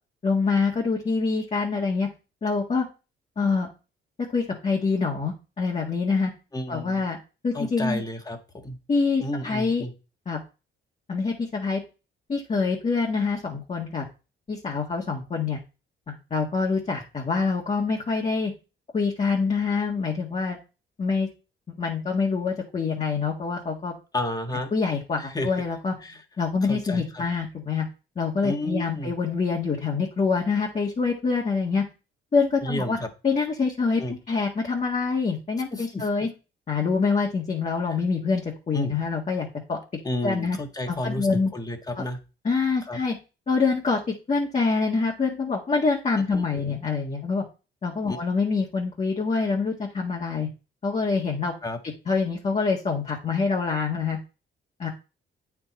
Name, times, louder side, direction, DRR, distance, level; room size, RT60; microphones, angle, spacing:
voice 1, 0.2-2.1 2.4-2.9 3.4-3.7 4.2-6.3 6.7-7.2 7.4-8.0 8.9-9.8 10.2-10.4 11.1-11.8 12.3-14.0 14.5-15.6 16.1-18.5 18.9-20.6 21.0-21.3 21.7-23.9 24.7-25.9 26.4-27.8 28.1-31.8 32.3-33.0 33.2-36.3 36.7-39.8 40.2-40.6 40.9-41.5 41.9-42.0 42.4-43.1 43.5-47.4 47.8-50.5 50.8-51.5 52.1-54.2 54.8-54.9, left 4 dB, 35° left, -2 dB, 1.7 m, -25 dB
voice 2, 6.5-7.1 7.5-8.8 9.2-9.9 24.1-24.7 25.2-25.5 26.0-26.2 26.6-27.2 28.4-29.1 32.6-33.1 34.0-34.2 35.7-36.1 38.7-38.9 40.0-41.3 41.5-42.2 42.9-43.0 46.3-46.4 48.1-48.2 51.6-51.8, left 1 dB, 20° left, 5 dB, 1.5 m, -31 dB
8.7 x 4.8 x 4.2 m, 0.31 s
cardioid pair, 90°, 20 cm